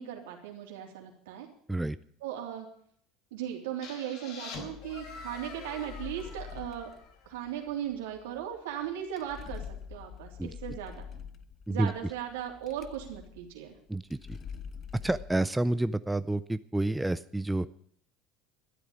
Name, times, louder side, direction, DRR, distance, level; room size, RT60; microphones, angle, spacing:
voice 1, 0.0-1.5 2.2-2.7 3.3-6.9 7.2-9.6 9.9-11.0 11.7-13.8, right 10 dB, 85° right, 2 dB, 3.3 m, -37 dB
sound 1, 3.8-7.5, left 5 dB, 65° left, 3.7 m, -46 dB
sound 2, 4.5-15.4, left 7 dB, 40° left, 1.0 m, -46 dB
voice 2, 13.9-14.4 15.0-17.7, right 2 dB, 5° right, 14 dB, 0.5 m, -29 dB
13.0 x 8.4 x 9.8 m, 0.63 s
supercardioid pair, 95°, 0 cm